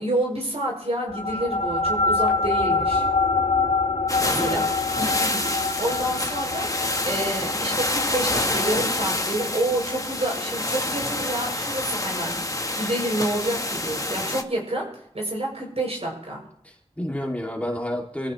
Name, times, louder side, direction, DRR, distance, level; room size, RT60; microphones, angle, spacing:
voice 1, 0.0-3.1 4.2-4.6 5.0-12.4 12.8-16.4, right 1 dB, 60° right, -1 dB, 7.2 m, -29 dB
sound 1, 1.1-11.9, left 3 dB, 70° left, 1.8 m, -26 dB
sound 2, 4.1-14.4, left 1 dB, 30° left, 1.3 m, -27 dB
voice 2, 4.2-4.7 16.6-18.3, left 1 dB, 10° left, -1 dB, 2.6 m, -30 dB
26.5 x 15.0 x 3.2 m, 0.68 s
wide cardioid pair, 50°, 12 cm